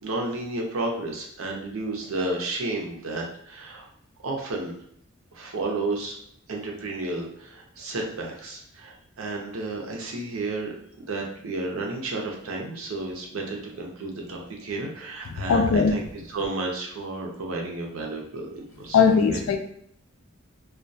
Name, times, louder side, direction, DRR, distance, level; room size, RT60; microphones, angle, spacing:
voice 1, 0.0-3.9 4.2-4.7 5.3-6.2 6.5-19.4, right 2 dB, 85° right, 0 dB, 0.6 m, -32 dB
voice 2, 15.5-15.9 18.9-19.6, left 5 dB, 80° left, 6 dB, 0.4 m, -19 dB
2.2 x 2.1 x 2.6 m, 0.68 s
head